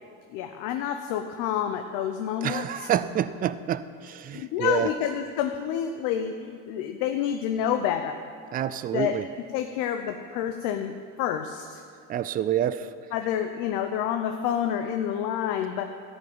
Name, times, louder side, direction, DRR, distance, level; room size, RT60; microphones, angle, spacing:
voice 1, 0.3-2.9 4.3-8.2 8.9-9.1 9.5-10.9 11.2-11.8 13.1-15.8, left 9 dB, 85° left, 6 dB, 0.8 m, -28 dB
voice 2, 2.4-4.9 8.5-9.3 12.1-12.9, right 10 dB, 30° right, 14 dB, 0.4 m, -28 dB
13.5 x 5.2 x 8.8 m, 2.4 s
cardioid pair, 135°, 32 cm